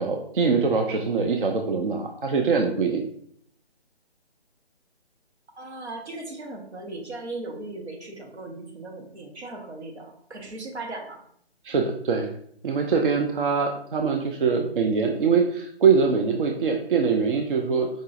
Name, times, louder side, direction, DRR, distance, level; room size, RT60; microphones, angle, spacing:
voice 1, 0.0-3.0 11.6-12.3 12.6-17.9, right 5 dB, 55° right, 3 dB, 0.5 m, -23 dB
voice 2, 5.6-11.2, right 2 dB, 85° right, 0 dB, 1.2 m, -37 dB
4.8 x 2.7 x 2.4 m, 0.65 s
hypercardioid pair, 165°, 32 cm